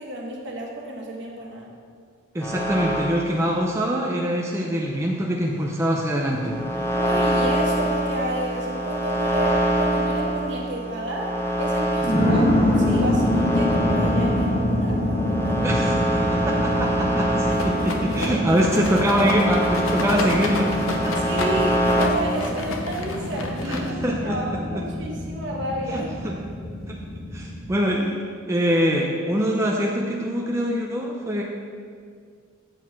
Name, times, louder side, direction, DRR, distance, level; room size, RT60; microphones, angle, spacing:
voice 1, 0.0-1.7 6.9-11.3 11.6-15.8 21.2-26.1, right 1 dB, 60° right, -1 dB, 1.4 m, -31 dB
voice 2, 2.3-6.6 15.6-21.2 23.7-24.8 25.9-26.3 26.9-27.0 27.3-28.2 28.5-31.4, equal, 15° right, -2 dB, 0.5 m, -24 dB
sound 1, 2.4-3.3 6.3-22.1, right 1 dB, 10° left, 0.8 m, -25 dB
sound 2, 9.3-9.5 10.2-10.3 12.0-27.6, left 1 dB, 40° left, 1.6 m, -26 dB
Rattle, 17.5-24.2, left 3 dB, 75° left, 0.8 m, -32 dB
8.0 x 4.6 x 5.9 m, 2.1 s
head